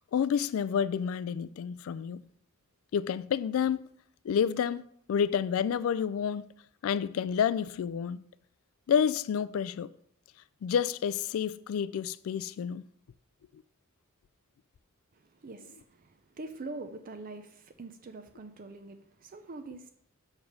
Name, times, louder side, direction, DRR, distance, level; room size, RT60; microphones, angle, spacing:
voice 1, 0.1-2.2 2.9-3.9 4.2-6.4 6.8-8.2 8.9-9.9 10.6-12.8, left 7 dB, 70° left, 0.3 m, -29 dB
voice 2, 15.1-19.9, right 2 dB, 40° right, 0.5 m, -44 dB
6.5 x 4.8 x 5.4 m
head